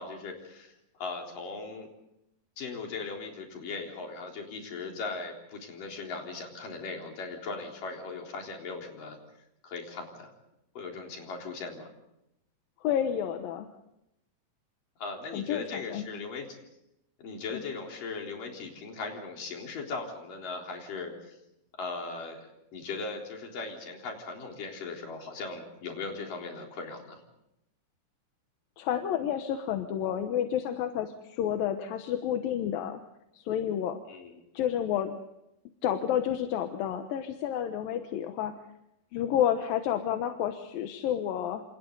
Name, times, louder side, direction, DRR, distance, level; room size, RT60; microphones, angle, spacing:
voice 1, 0.0-1.9 2.6-9.2 9.6-10.3 10.8-11.9 15.0-16.6 17.2-21.3 21.8-27.2 34.1-34.3, left 4 dB, 70° left, 1 dB, 5.4 m, -38 dB
voice 2, 12.8-13.7 15.3-16.1 17.5-17.6 28.8-33.0 33.3-34.0 34.5-35.1 35.8-38.5 39.1-41.6, left 10 dB, 90° left, 6 dB, 2.9 m, -30 dB
28.0 x 27.5 x 3.9 m, 0.84 s
omnidirectional pair, 3.9 m